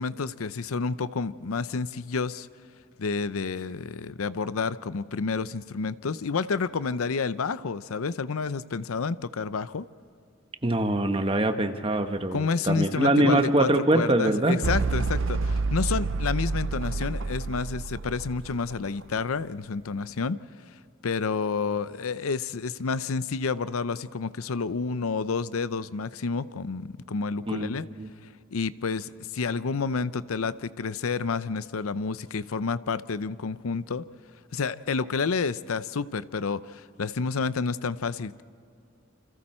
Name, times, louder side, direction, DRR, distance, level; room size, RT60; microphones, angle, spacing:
voice 1, 0.0-2.5 3.0-9.9 12.3-13.7 13.9-20.4 21.0-27.9 28.5-34.0 34.5-38.4, left 4 dB, 85° left, 15 dB, 0.6 m, -29 dB
voice 2, 10.6-14.6 27.5-28.1, right 1 dB, 25° right, 7 dB, 1.1 m, -24 dB
sound 1, 14.6-19.2, right 3 dB, 65° right, 0.5 m, -29 dB
28.5 x 26.5 x 4.4 m, 2.5 s
head